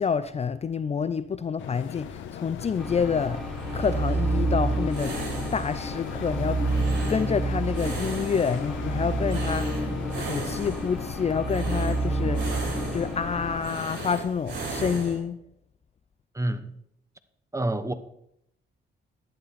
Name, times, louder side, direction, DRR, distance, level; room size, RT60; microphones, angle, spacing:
voice 1, 0.0-3.4 3.7-5.1 5.5-6.6 7.1-9.8 10.2-12.5 12.9-15.4, left 6 dB, 30° left, 0.5 m, -28 dB
sound 1, 1.6-14.2, left 11 dB, 75° left, 0.7 m, -39 dB
sound 2, 1.8-15.2, right 3 dB, 60° right, 5.6 m, -39 dB
sound 3, 2.8-13.6, right 2 dB, ahead, 2.9 m, -29 dB
voice 2, 16.3-16.7 17.5-17.9, right 1 dB, 15° right, 0.9 m, -28 dB
11.5 x 11.0 x 4.2 m
cardioid pair, 90°, 20 cm